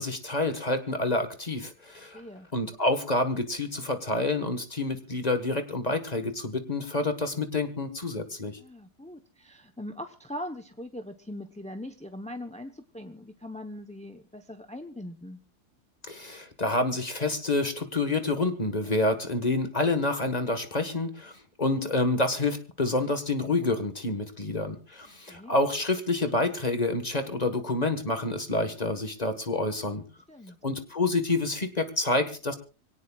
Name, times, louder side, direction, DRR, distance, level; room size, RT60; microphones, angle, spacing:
voice 1, 0.0-2.2 2.5-8.6 16.0-30.0 30.6-32.5, left 2 dB, 25° left, 8 dB, 1.4 m, -28 dB
voice 2, 2.1-2.5 8.6-15.4 25.3-25.5 30.3-30.6, left 1 dB, 10° left, 6 dB, 0.5 m, -41 dB
25.0 x 17.5 x 2.4 m, 0.35 s
omnidirectional pair, 1.7 m